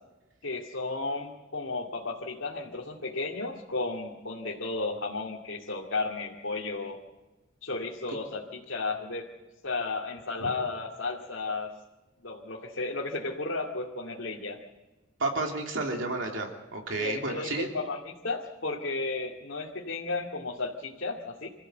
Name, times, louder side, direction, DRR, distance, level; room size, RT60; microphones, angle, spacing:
voice 1, 0.4-7.0 7.6-9.3 9.6-11.7 12.2-14.6 17.0-21.5, left 3 dB, 80° left, -3 dB, 2.3 m, -33 dB
voice 2, 15.2-17.7, right 2 dB, 70° right, 1 dB, 3.2 m, -31 dB
26.5 x 14.5 x 8.0 m, 1.2 s
head